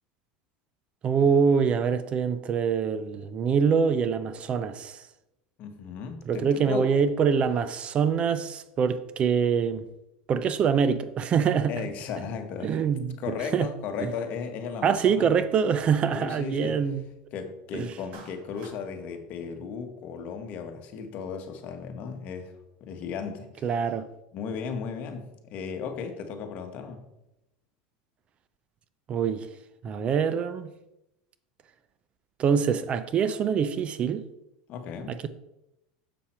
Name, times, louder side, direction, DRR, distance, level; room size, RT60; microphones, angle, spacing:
voice 1, 1.0-5.0 6.3-9.9 10.3-11.7 12.6-13.2 13.5-13.7 14.8-17.1 17.7-17.9 23.6-24.1 29.1-29.5 29.8-30.7 32.4-34.2, right 6 dB, 35° right, 0.5 m, -24 dB
voice 2, 5.6-6.9 11.7-12.8 13.2-15.3 16.1-16.8 17.3-22.5 22.8-23.7 24.3-27.0 34.7-35.2, left 6 dB, 50° left, 1.2 m, -35 dB
Clapping, 18.1-18.8, right 4 dB, 50° right, 1.9 m, -48 dB
7.0 x 5.8 x 4.4 m
supercardioid pair, 125°, 3 cm